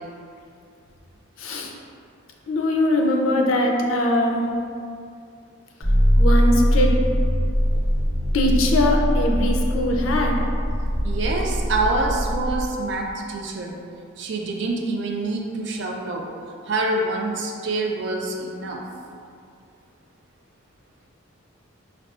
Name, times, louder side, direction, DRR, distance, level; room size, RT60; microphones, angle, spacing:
voice 1, 1.4-1.7 2.5-4.4 6.1-7.0 8.3-10.4, left 1 dB, 75° left, 1 dB, 0.4 m, -21 dB
sound 1, 5.8-12.7, equal, 60° left, 0.8 m, -21 dB
voice 2, 11.0-13.7 14.2-16.2 16.7-18.8, right 2 dB, 55° right, 1 dB, 0.4 m, -26 dB
4.7 x 2.3 x 2.4 m, 2.3 s
head